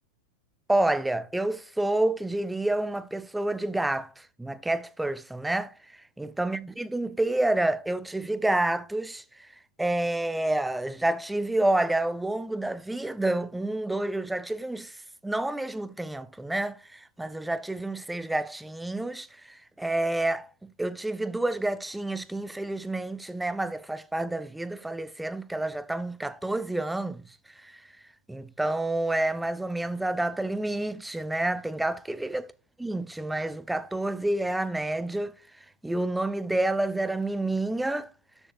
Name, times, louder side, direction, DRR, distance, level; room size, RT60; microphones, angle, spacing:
voice 1, 0.7-5.7 6.2-9.2 9.8-15.0 15.2-20.5 20.8-27.2 27.6-27.7 28.3-32.4 32.8-35.3 35.8-38.1, right 2 dB, 5° right, 0.6 m, -29 dB
12.5 x 7.2 x 2.5 m
figure-of-eight pair, 90°, 0 cm